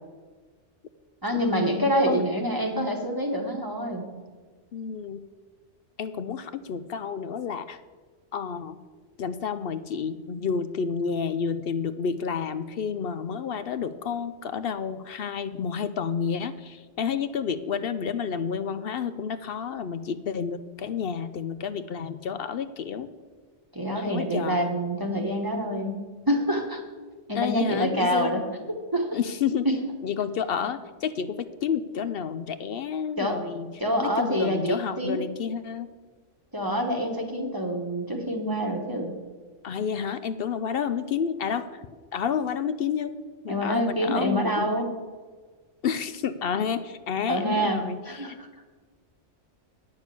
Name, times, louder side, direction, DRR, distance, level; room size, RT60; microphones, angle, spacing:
voice 1, 1.2-4.0 23.7-26.8 27.3-28.4 28.9-29.2 29.6-29.8 33.2-33.4 33.8-35.2 36.5-39.1 43.5-44.9 47.3-48.7, equal, 20° right, 2 dB, 1.2 m, -26 dB
voice 2, 4.7-5.2 6.0-7.8 8.3-8.8 9.2-23.1 24.0-24.6 27.3-28.4 29.1-29.7 30.0-33.7 34.0-35.9 39.6-41.8 42.1-43.1 43.4-44.7 45.8-48.4, left 7 dB, 60° left, 12 dB, 0.7 m, -30 dB
9.7 x 6.6 x 8.3 m, 1.4 s
omnidirectional pair, 1.3 m